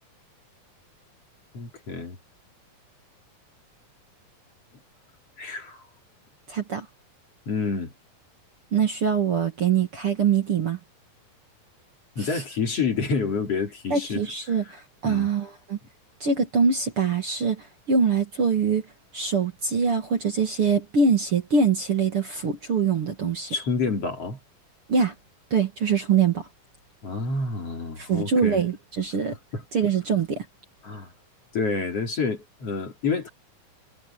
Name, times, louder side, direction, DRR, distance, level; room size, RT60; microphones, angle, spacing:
voice 1, 1.5-2.2 5.4-5.8 7.5-7.9 12.2-14.3 15.0-15.3 23.5-24.4 27.0-28.6 29.5-29.6 30.8-31.1 31.5-33.3, left 4 dB, 45° left, 4.2 m, -28 dB
voice 2, 6.5-6.9 8.7-10.8 12.2-12.4 13.9-15.8 16.2-18.9 19.1-23.5 24.9-25.1 25.5-26.5 28.0-29.4 29.7-30.5, right 5 dB, 45° right, 2.7 m, -24 dB
omnidirectional pair, 4.1 m